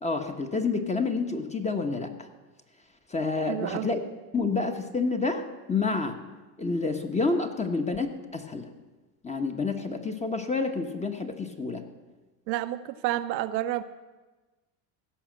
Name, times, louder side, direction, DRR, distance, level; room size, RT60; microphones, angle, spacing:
voice 1, 0.0-2.3 3.1-4.0 4.3-6.2 6.6-8.7 9.2-11.8, left 3 dB, 15° left, 5 dB, 0.9 m, -29 dB
voice 2, 3.5-3.9 12.5-13.8, right 14 dB, 85° right, 12 dB, 0.9 m, -30 dB
16.0 x 5.7 x 7.5 m, 1.2 s
supercardioid pair, 105°, 49 cm